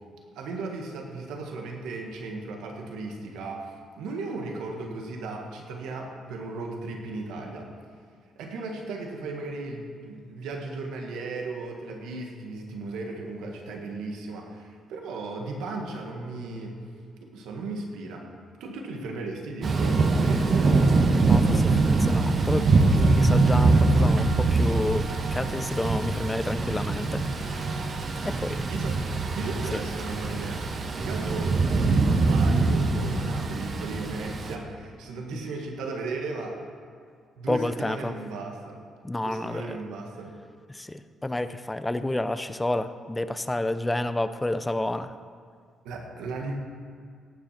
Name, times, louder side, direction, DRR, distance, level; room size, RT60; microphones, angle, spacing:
voice 1, 0.4-7.7 8.4-16.8 17.2-18.3 18.6-20.8 28.7-29.0 29.4-30.6 31.0-36.6 37.4-38.8 39.2-40.4 45.8-46.6, right 3 dB, 90° right, 2 dB, 1.8 m, -36 dB
Thunder / Rain, 19.6-34.5, right 3 dB, 45° right, 1.4 m, -23 dB
voice 2, 21.2-27.5 28.2-28.7 29.7-29.8 35.3-35.4 37.5-38.1 39.0-39.8 40.7-45.1, left 1 dB, 15° left, 12 dB, 0.6 m, -30 dB
17.5 x 7.6 x 5.9 m, 2.1 s
cardioid pair, 90°, 0 cm